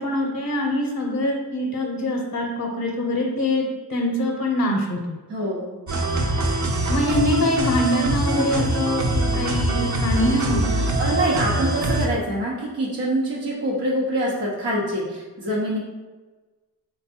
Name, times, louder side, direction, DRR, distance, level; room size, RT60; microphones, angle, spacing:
voice 1, 0.0-3.6 3.9-5.2 6.9-10.9, left 1 dB, 45° left, 0 dB, 0.6 m, -24 dB
voice 2, 5.3-5.8 11.0-15.8, right 1 dB, 85° right, -6 dB, 1.0 m, -25 dB
sound 1, 5.9-12.1, right 2 dB, 45° right, 0.7 m, -23 dB
3.5 x 2.2 x 4.2 m, 1.2 s
cardioid pair, 55°, 39 cm